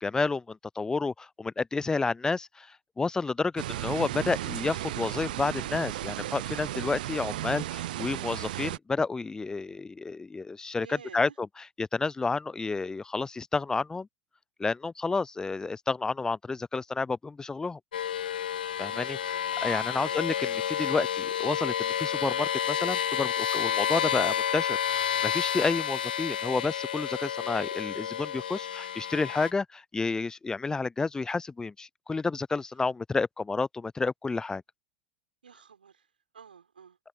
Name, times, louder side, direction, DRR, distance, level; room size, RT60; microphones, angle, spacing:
voice 1, 0.0-14.1 14.6-17.8 18.8-19.2 19.6-34.6, left 4 dB, 15° left, 0.6 m, -30 dB
sound 1, 3.6-8.8, right 14 dB, 70° right, 0.8 m, -34 dB
voice 2, 10.8-11.4 18.9-19.5 20.0-20.2 35.4-37.0, right 7 dB, 85° right, 6.5 m, -51 dB
sound 2, 17.9-29.5, left 9 dB, 75° left, 0.7 m, -30 dB
hypercardioid pair, 90°, 5 cm